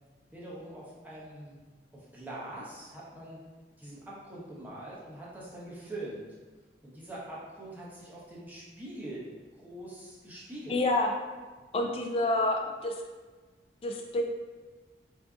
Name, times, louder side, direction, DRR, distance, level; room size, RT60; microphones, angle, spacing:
voice 1, 0.3-1.6 1.9-3.4 3.8-6.3 6.8-9.3 9.5-10.8, right 1 dB, 10° right, -7 dB, 0.7 m, -43 dB
voice 2, 10.7-11.1 11.7-13.0 13.8-14.2, left 2 dB, 30° left, 2 dB, 0.3 m, -28 dB
4.7 x 2.6 x 2.3 m, 1.3 s
head